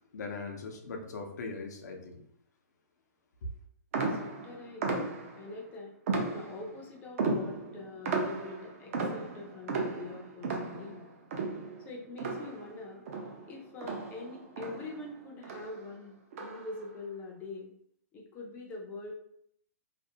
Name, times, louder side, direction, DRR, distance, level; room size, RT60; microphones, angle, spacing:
voice 1, 0.1-2.2, left 4 dB, 85° left, 3 dB, 0.6 m, -40 dB
sound 1, 3.9-5.5 6.1-6.8 7.2-12.8 13.1-15.1 15.4-15.8 16.3-16.8, right 3 dB, 55° right, 0.5 m, -35 dB
voice 2, 4.1-4.9 5.4-5.9 6.3-11.1 11.8-13.1 13.5-17.7 18.1-19.1, left 3 dB, 20° left, 0 dB, 0.4 m, -44 dB
2.5 x 2.0 x 2.7 m, 0.69 s
hypercardioid pair, 150°, 9 cm